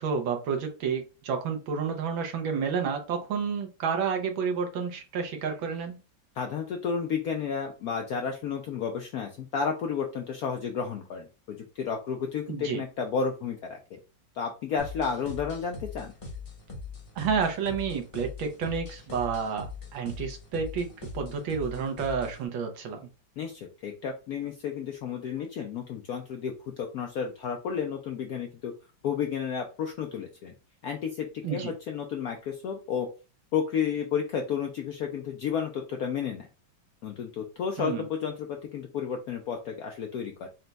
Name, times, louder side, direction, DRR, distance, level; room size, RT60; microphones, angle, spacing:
voice 1, 0.0-6.0 12.5-12.8 17.2-23.0 31.4-31.7 37.8-38.1, right 6 dB, 85° right, 4 dB, 1.6 m, -30 dB
voice 2, 6.4-14.0 14.3-16.1 23.4-28.7 29.0-30.5 30.8-33.1 33.5-36.5 37.0-40.5, left 6 dB, 75° left, 3 dB, 0.8 m, -32 dB
sound 1, 14.8-22.4, left 4 dB, 25° left, 0.7 m, -41 dB
4.2 x 2.3 x 3.9 m, 0.33 s
omnidirectional pair, 2.1 m